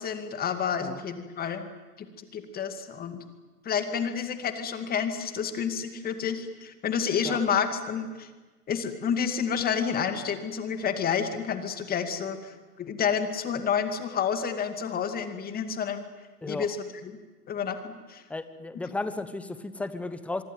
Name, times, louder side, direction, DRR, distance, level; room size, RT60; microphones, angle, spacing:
voice 1, 0.0-1.7 2.0-3.2 3.6-8.3 8.7-16.0 16.4-16.8 17.0-17.1 17.5-18.2, left 7 dB, 20° left, 8 dB, 2.3 m, -29 dB
voice 2, 18.3-20.4, left 2 dB, 5° left, 12 dB, 0.9 m, -34 dB
25.0 x 24.5 x 9.3 m, 1.3 s
hypercardioid pair, 130°, 49 cm